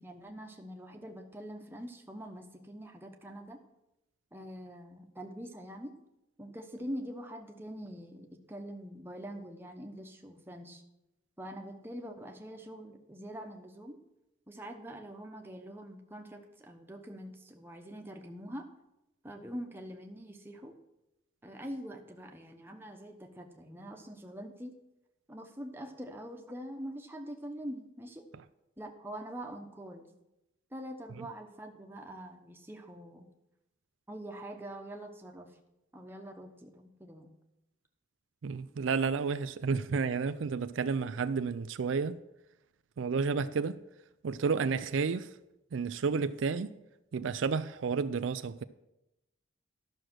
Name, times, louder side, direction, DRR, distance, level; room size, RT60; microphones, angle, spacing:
voice 1, 0.0-3.6 4.3-6.0 6.4-10.8 11.4-14.0 14.5-18.7 19.2-20.8 21.4-24.7 25.3-28.2 28.8-30.1 30.7-33.3 34.1-35.5 35.9-37.3, equal, 10° right, 1.0 m, -44 dB
voice 2, 38.4-42.2 43.0-43.8 44.2-45.3 45.7-46.7 47.1-48.6, right 5 dB, 80° right, 0.4 m, -31 dB
12.0 x 6.4 x 6.2 m
head